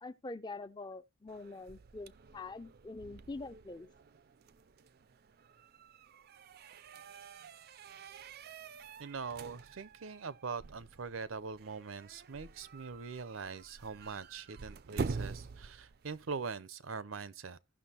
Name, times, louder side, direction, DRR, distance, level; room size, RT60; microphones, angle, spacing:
voice 1, 0.0-3.9, left 3 dB, 20° left, 0.5 m, -45 dB
sound 1, 1.3-16.3, right 4 dB, 50° right, 0.4 m, -47 dB
voice 2, 9.0-17.6, right 5 dB, 85° right, 0.7 m, -42 dB
16.0 x 6.0 x 2.9 m
head